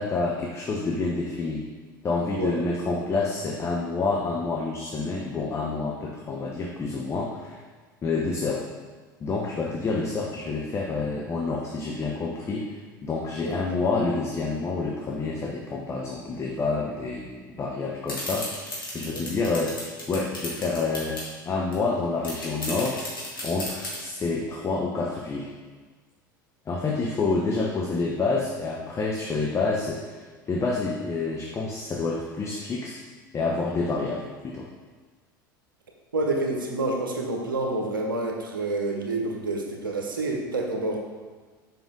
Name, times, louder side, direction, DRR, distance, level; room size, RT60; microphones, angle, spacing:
voice 1, 0.0-1.6 2.0-7.6 8.0-8.6 9.2-18.5 18.9-21.2 21.4-23.0 23.4-25.5 26.7-33.0 33.3-34.7, left 3 dB, 25° left, -1 dB, 0.9 m, -28 dB
voice 2, 13.4-13.8 19.0-19.3 36.1-41.0, right 2 dB, 75° right, 2 dB, 1.1 m, -28 dB
sound 1, 18.1-21.3 21.7-21.8 22.0-24.0, left 1 dB, 80° left, 2.1 m, -34 dB
7.2 x 5.4 x 3.7 m, 1.4 s
figure-of-eight pair, 75°, 11 cm